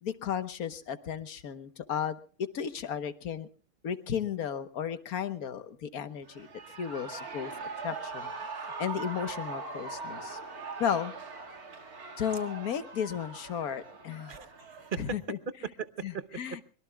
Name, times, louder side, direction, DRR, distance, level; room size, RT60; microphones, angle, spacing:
voice 1, 0.0-3.5 3.8-6.5 6.8-7.5 7.8-10.4 10.8-11.1 12.2-14.4 15.0-15.4 16.0-16.6, left 8 dB, 85° left, 12 dB, 1.6 m, -34 dB
Shout / Cheering, 6.2-15.2, right 4 dB, 90° right, 2.5 m, -41 dB
voice 2, 14.3-16.6, right 5 dB, 40° right, 13 dB, 0.9 m, -38 dB
23.5 x 22.5 x 2.3 m, 0.43 s
omnidirectional pair, 1.5 m